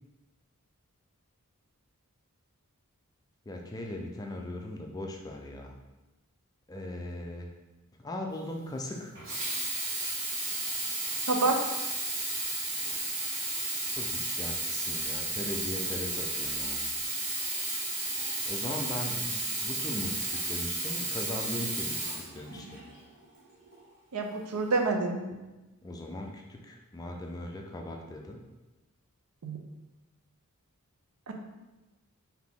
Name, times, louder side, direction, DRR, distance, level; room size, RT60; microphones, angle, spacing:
voice 1, 3.5-5.8 6.7-7.5 8.0-9.1 13.9-16.8 18.5-22.8 25.8-28.4, left 1 dB, 15° left, 2 dB, 0.4 m, -39 dB
Sink (filling or washing), 9.2-22.9 23.7-23.8, right 2 dB, 55° right, 1.3 m, -33 dB
voice 2, 24.1-25.2 29.4-29.6 31.3-31.4, right 3 dB, 85° right, 3 dB, 0.6 m, -27 dB
4.0 x 2.7 x 3.6 m, 1.1 s
head